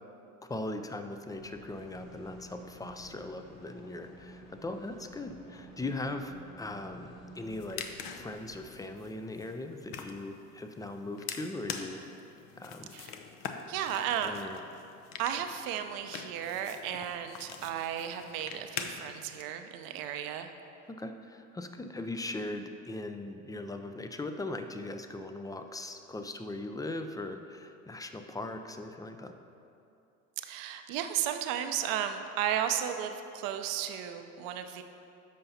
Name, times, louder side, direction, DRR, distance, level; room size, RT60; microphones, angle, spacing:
voice 1, 0.4-12.0 12.6-12.9 14.2-14.6 20.9-29.3, left 2 dB, 10° left, 7 dB, 0.4 m, -39 dB
sound 1, 1.3-9.0, right 1 dB, 85° left, 1.4 m, -52 dB
sound 2, 7.4-19.4, left 7 dB, 60° left, 0.8 m, -44 dB
voice 2, 13.7-14.5 15.2-20.5 30.4-34.8, right 10 dB, 60° right, 7 dB, 0.7 m, -34 dB
13.5 x 5.6 x 2.8 m, 2.7 s
hypercardioid pair, 75°, 39 cm